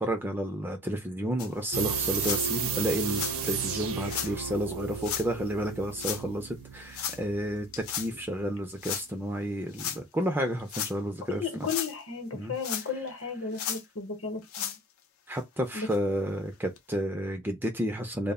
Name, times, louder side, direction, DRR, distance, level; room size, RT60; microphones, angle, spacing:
voice 1, 0.0-11.7 12.3-12.5 15.3-18.3, equal, 10° right, 0.3 m, -31 dB
sound 1, 1.4-1.5 2.1-2.4 3.1-3.4 4.0-4.3 5.0-5.3 6.0-6.2 6.9-7.2 7.7-8.1 8.8-9.1 9.7-10.0 10.6-10.9 11.5-11.9 12.6-13.1 13.5-13.8 14.4-14.8 15.4-15.5 15.9-16.0 16.8-16.9, left 9 dB, 90° left, 0.5 m, -34 dB
sound 2, 1.7-8.5 8.8-8.9, right 6 dB, 85° right, 0.6 m, -34 dB
voice 2, 11.3-14.8 15.7-15.9, left 5 dB, 65° left, 0.8 m, -34 dB
2.1 x 2.0 x 3.4 m
head